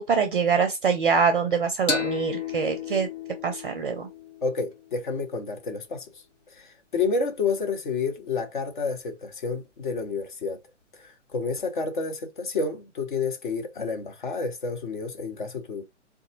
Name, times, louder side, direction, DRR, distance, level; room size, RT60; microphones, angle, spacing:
voice 1, 0.0-3.1 3.4-4.1, right 5 dB, 45° right, 0.5 m, -24 dB
sound 1, 1.9-5.2, left 6 dB, 85° left, 1.2 m, -33 dB
voice 2, 4.4-6.1 6.5-10.6 10.9-15.8, left 4 dB, 40° left, 0.8 m, -30 dB
3.8 x 2.3 x 2.7 m
figure-of-eight pair, 135°, 37 cm